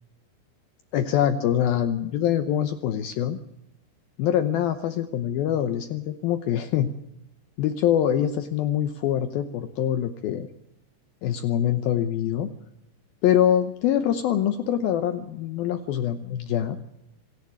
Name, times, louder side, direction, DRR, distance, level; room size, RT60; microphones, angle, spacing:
voice 1, 0.9-3.4 4.2-6.9 7.6-10.5 11.2-12.5 13.2-16.8, left 10 dB, 85° left, 10 dB, 2.1 m, -24 dB
26.5 x 11.5 x 8.5 m, 0.85 s
omnidirectional pair, 5.5 m